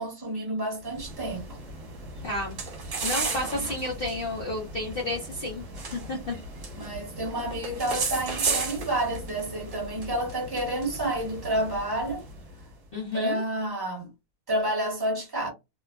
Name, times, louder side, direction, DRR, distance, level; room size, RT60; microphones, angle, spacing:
voice 1, 0.0-1.6 3.3-3.7 6.8-12.2 13.1-14.1 14.5-15.5, right 1 dB, 15° right, 0.9 m, -30 dB
sound 1, 0.8-12.6, right 3 dB, 55° right, 1.1 m, -35 dB
voice 2, 2.2-2.6 3.0-6.4 12.9-13.4, left 2 dB, 60° left, 0.5 m, -31 dB
3.0 x 2.3 x 2.2 m
omnidirectional pair, 1.9 m